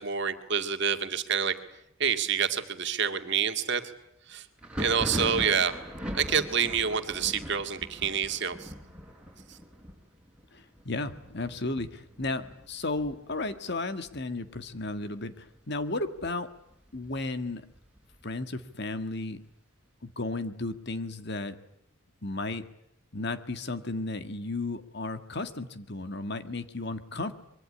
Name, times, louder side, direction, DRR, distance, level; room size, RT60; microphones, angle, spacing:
voice 1, 0.0-1.5 2.0-3.8 4.3-4.5 4.8-5.7 6.1-8.7 9.5-9.6, right 7 dB, 55° right, 7 dB, 2.1 m, -27 dB
Thunder, 4.6-14.1 14.4-15.0 15.3-16.3 16.7-18.4, equal, 5° right, 5.1 m, -40 dB
voice 2, 10.5-16.5 16.9-17.6 18.2-19.4 20.0-21.6 22.2-22.6 23.1-27.3, left 2 dB, 50° left, 10 dB, 1.7 m, -34 dB
24.5 x 23.0 x 10.0 m, 0.76 s
head